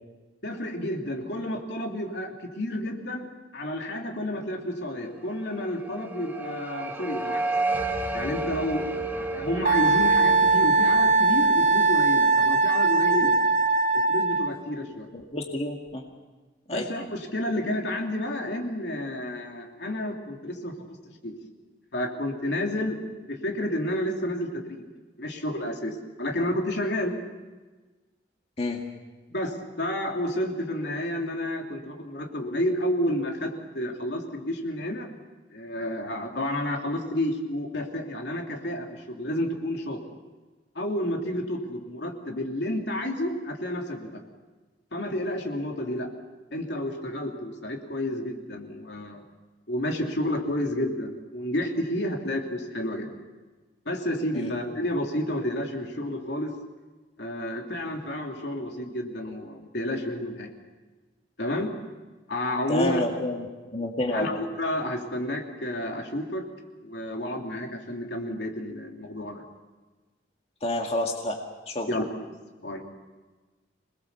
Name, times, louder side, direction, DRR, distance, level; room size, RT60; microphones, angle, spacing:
voice 1, 0.4-3.3 3.5-7.4 8.1-13.3 14.1-15.1 16.7-21.0 21.2-21.3 21.9-24.8 25.2-27.1 29.3-35.1 35.5-40.0 40.7-44.2 44.9-46.1 46.5-49.2 49.7-53.1 53.8-56.5 57.2-60.5 61.4-61.7 62.3-63.0 64.1-66.4 66.8-69.4 71.9-72.0 72.6-72.8, left 1 dB, 70° left, 1 dB, 3.2 m, -30 dB
sound 1, 5.5-12.5, right 2 dB, 10° right, 1.4 m, -32 dB
Wind instrument woodwind instrument, 9.7-14.5, right 3 dB, 55° right, 1.9 m, -20 dB
voice 2, 15.1-16.0 16.7-16.9 28.6-28.8 54.3-54.5 62.7-63.5 63.7-64.4 70.6-71.4 71.7-71.9, left 1 dB, 35° left, 1 dB, 2.0 m, -29 dB
27.0 x 20.5 x 7.0 m, 1.3 s
head